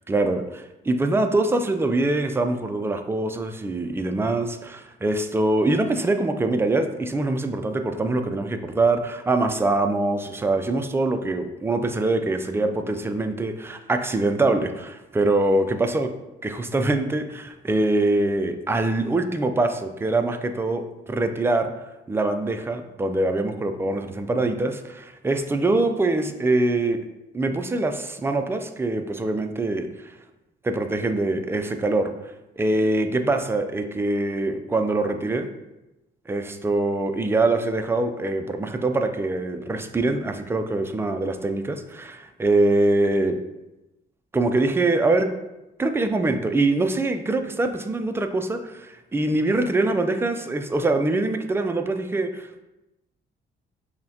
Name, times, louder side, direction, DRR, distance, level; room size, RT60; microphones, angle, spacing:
voice 1, 0.1-16.1 16.4-21.7 22.1-27.0 27.3-30.1 30.6-32.1 32.6-35.5 36.3-43.4 44.3-45.3 45.8-52.6, right 2 dB, 10° right, 6 dB, 0.3 m, -24 dB
5.3 x 2.1 x 2.8 m, 0.97 s
cardioid pair, 90°, 20 cm